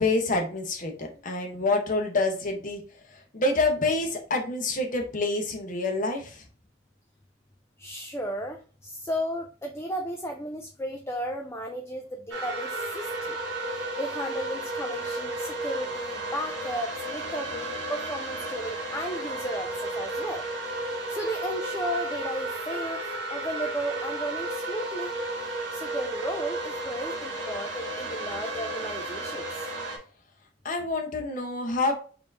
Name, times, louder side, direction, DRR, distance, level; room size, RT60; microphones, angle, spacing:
voice 1, 0.0-2.8 3.3-6.4 30.6-31.9, left 2 dB, 45° left, 3 dB, 1.0 m, -27 dB
voice 2, 7.8-8.6 8.8-13.4 14.0-19.7 20.0-20.4 21.1-23.0 23.3-25.1 25.7-29.5, equal, 15° left, 2 dB, 0.4 m, -34 dB
sound 1, 12.3-30.0, right 2 dB, 75° right, 1.4 m, -33 dB
4.3 x 2.7 x 3.5 m, 0.38 s
head